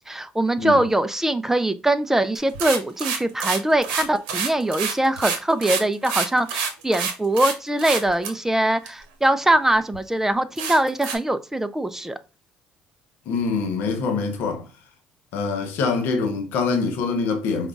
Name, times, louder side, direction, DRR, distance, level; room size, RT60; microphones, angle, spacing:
voice 1, 0.1-12.2, right 1 dB, 10° right, 0.4 m, -22 dB
sound 1, 2.4-7.5 7.8-8.3 8.9-9.0 9.5-9.6 9.9-10.0 10.6-11.2, right 6 dB, 90° right, 0.8 m, -27 dB
voice 2, 13.3-14.7 15.3-17.7, left 4 dB, 75° left, 1.0 m, -24 dB
5.1 x 2.3 x 3.5 m
supercardioid pair, 70°, 3 cm